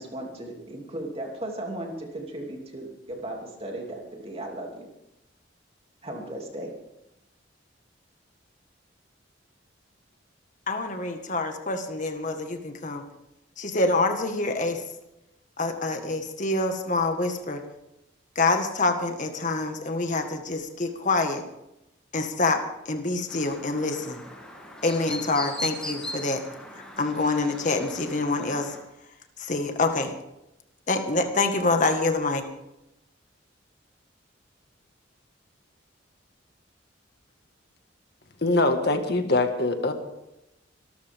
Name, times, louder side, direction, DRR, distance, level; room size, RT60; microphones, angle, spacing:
voice 1, 0.0-4.9 6.0-6.7, right 1 dB, 30° right, 1 dB, 2.8 m, -36 dB
voice 2, 10.7-13.0 13.6-14.8 15.6-17.6 18.4-21.4 22.1-24.2 24.8-26.4 27.0-28.7 29.4-30.1 30.9-32.4, left 3 dB, 40° left, 5 dB, 1.7 m, -26 dB
Chirp tweet, 23.3-28.8, left 1 dB, 5° left, 2.6 m, -39 dB
voice 3, 38.4-39.9, left 2 dB, 55° left, 6 dB, 1.8 m, -23 dB
25.5 x 13.0 x 3.6 m, 0.89 s
head